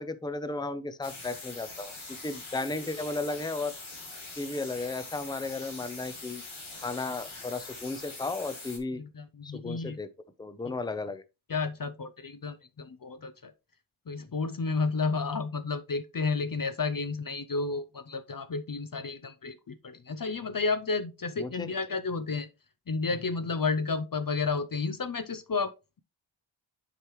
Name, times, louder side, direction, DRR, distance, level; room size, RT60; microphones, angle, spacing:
voice 1, 0.0-1.9 2.2-3.7 4.4-6.4 6.8-9.0 9.4-10.1 10.4-11.2 21.4-21.7, left 3 dB, 10° left, 0.6 m, -34 dB
sound 1, 1.0-8.8, left 3 dB, 75° left, 2.1 m, -43 dB
voice 2, 9.0-10.0 11.5-13.5 14.1-22.5 22.9-25.7, left 4 dB, 45° left, 0.6 m, -31 dB
7.9 x 4.9 x 3.1 m
cardioid pair, 40°, 48 cm